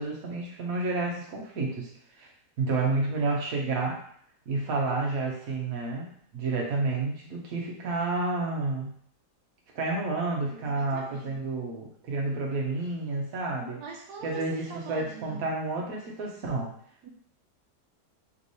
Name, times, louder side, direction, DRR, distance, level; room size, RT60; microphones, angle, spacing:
voice 1, 0.0-1.9 2.2-2.3 2.6-4.0 4.5-8.9 9.7-13.8 14.2-16.7, right 3 dB, 60° right, -1 dB, 1.3 m, -30 dB
voice 2, 10.5-11.4 13.7-15.4 17.0-17.1, right 5 dB, 80° right, 0 dB, 1.2 m, -43 dB
3.5 x 3.2 x 4.0 m, 0.62 s
omnidirectional pair, 1.7 m